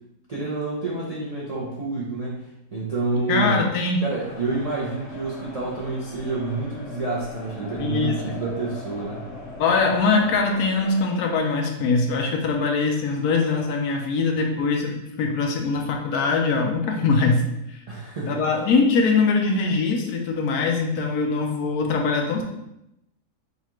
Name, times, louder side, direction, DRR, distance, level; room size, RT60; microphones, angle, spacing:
voice 1, 0.3-2.5 2.7-3.6 4.0-9.2 17.9-18.4, right 3 dB, 50° right, -6 dB, 0.4 m, -28 dB
voice 2, 3.3-4.0 7.8-8.4 9.6-17.4 17.7-17.8 18.3-22.4, left 4 dB, 75° left, 2 dB, 1.1 m, -22 dB
sound 1, 4.1-11.0, left 2 dB, 50° left, 1.8 m, -39 dB
5.4 x 2.4 x 2.9 m, 0.85 s
omnidirectional pair, 1.7 m